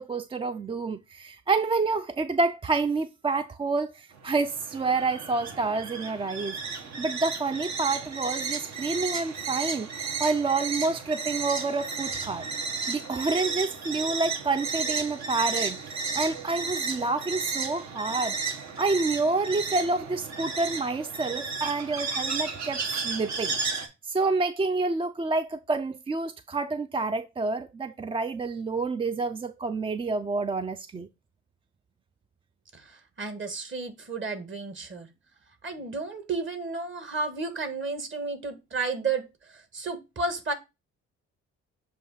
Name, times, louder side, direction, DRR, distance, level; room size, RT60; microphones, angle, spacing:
voice 1, 0.0-9.9 10.2-12.5 12.9-18.4 18.8-23.6 24.0-31.1, right 3 dB, 20° right, 0.3 m, -28 dB
sound 1, 4.1-23.9, right 4 dB, 65° right, 1.5 m, -33 dB
voice 2, 33.2-35.1 35.6-39.2 39.7-40.5, right 4 dB, 40° right, 1.8 m, -32 dB
7.5 x 2.8 x 5.5 m
cardioid pair, 90°, 30 cm